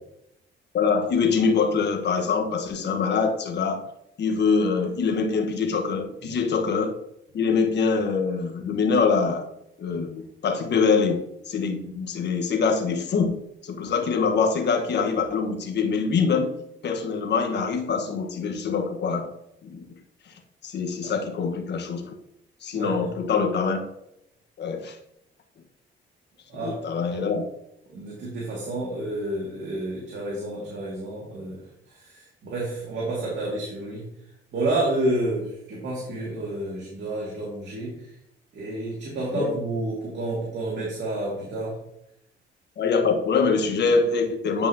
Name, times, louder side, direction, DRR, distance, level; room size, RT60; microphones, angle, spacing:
voice 1, 0.7-3.8 4.2-6.9 7.3-9.5 9.8-11.2 11.5-16.5 16.8-19.3 19.6-19.8 20.6-22.1 22.6-23.8 24.6-25.0 26.6-27.4 39.3-39.5 42.8-44.7, left 5 dB, 60° left, 4 dB, 1.3 m, -24 dB
voice 2, 26.5-26.8 27.1-27.3 27.9-31.6 31.9-34.1 34.5-38.0 38.5-41.8, right 2 dB, 65° right, -4 dB, 2.2 m, -30 dB
9.8 x 5.1 x 2.8 m, 0.80 s
cardioid pair, 90°, 20 cm